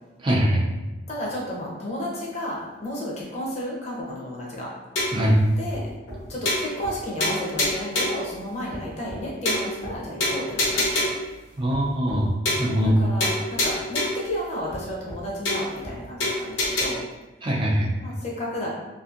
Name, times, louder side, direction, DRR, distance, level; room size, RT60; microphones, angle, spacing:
voice 1, 0.2-0.7 5.1-5.4 11.6-12.3 12.6-13.0 17.4-17.9, equal, 25° right, -3 dB, 0.3 m, -21 dB
voice 2, 1.1-4.7 5.6-5.9 6.3-11.1 12.8-17.0 18.0-18.7, equal, 35° left, -3 dB, 0.6 m, -32 dB
sound 1, 5.0-5.3 5.7-5.8 6.1-6.2 6.5-6.9 7.2-8.3 8.7-8.8 9.1-9.2 9.5-9.9 10.2-11.3 11.7-11.8 12.1-12.2 12.5-12.9 13.2-14.3 14.7-14.8 15.1-15.2 15.5-15.9 16.2-16.9, left 1 dB, 80° left, 0.9 m, -26 dB
2.6 x 2.5 x 2.4 m, 1.1 s
head